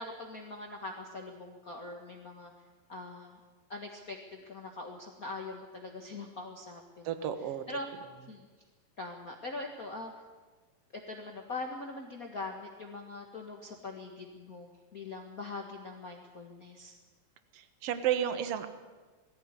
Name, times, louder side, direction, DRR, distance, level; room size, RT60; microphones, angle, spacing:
voice 1, 0.0-2.5 2.9-3.4 3.7-7.9 8.3-8.5 9.0-10.1 10.9-16.9, left 3 dB, 55° left, 1 dB, 0.9 m, -42 dB
voice 2, 7.0-7.6 17.5-18.7, right 10 dB, 60° right, 9 dB, 1.7 m, -32 dB
20.0 x 16.0 x 9.7 m, 1.4 s
omnidirectional pair, 4.4 m